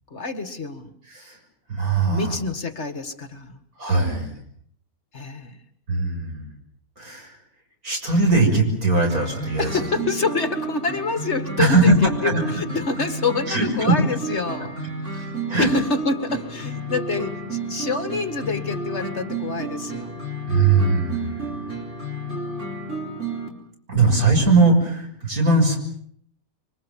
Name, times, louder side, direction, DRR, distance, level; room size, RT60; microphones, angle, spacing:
voice 1, 0.1-0.9 2.1-3.6 5.1-5.6 9.6-20.2, left 3 dB, 50° left, 9 dB, 2.2 m, -27 dB
voice 2, 1.1-1.4 1.7-2.3 3.8-4.3 5.9-6.5 7.0-7.4 7.8-9.7 11.6-11.9 12.2-12.6 13.5-13.9 15.5-15.7 20.5-21.6 23.9-25.8, right 3 dB, 85° right, 2 dB, 7.1 m, -20 dB
sound 1, 9.1-23.5, right 3 dB, 55° right, 4.4 m, -31 dB
26.0 x 25.0 x 7.5 m, 0.65 s
omnidirectional pair, 1.5 m